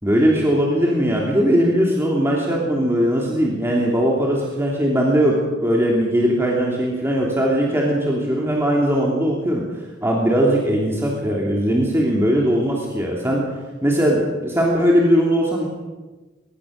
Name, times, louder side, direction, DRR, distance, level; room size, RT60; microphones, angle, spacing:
voice 1, 0.0-13.4 13.8-15.7, equal, 15° right, -2 dB, 3.0 m, -19 dB
22.5 x 18.5 x 6.6 m, 1.2 s
head